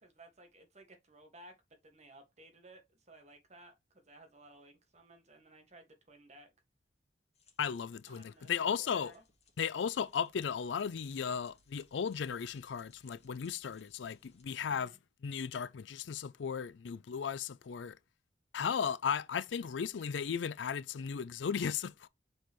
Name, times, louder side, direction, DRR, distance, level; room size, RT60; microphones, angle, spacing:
voice 1, 0.0-1.5 1.8-6.5 8.1-8.5 8.8-9.2 14.7-15.0, right 1 dB, 40° right, 1.7 m, -57 dB
sound 1, 7.3-14.4, left 4 dB, 40° left, 2.2 m, -69 dB
voice 2, 7.6-9.1 9.6-14.9 15.2-18.0 18.5-22.1, left 7 dB, 90° left, 0.4 m, -36 dB
5.8 x 5.3 x 3.0 m
head